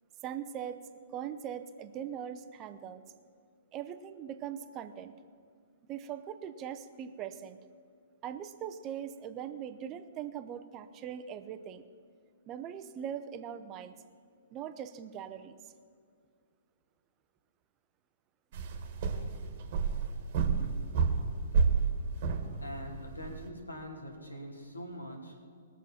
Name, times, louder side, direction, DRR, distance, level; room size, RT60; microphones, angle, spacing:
voice 1, 0.2-0.8 1.1-3.0 3.7-5.1 5.9-7.6 8.2-11.8 12.5-13.9 14.5-15.6, right 9 dB, 30° right, 10 dB, 0.7 m, -41 dB
sound 1, 18.5-23.5, right 5 dB, 45° right, 1.5 m, -31 dB
voice 2, 22.6-25.4, equal, 90° left, 2 dB, 2.4 m, -43 dB
20.0 x 7.2 x 5.8 m, 2.2 s
figure-of-eight pair, 120°, 0 cm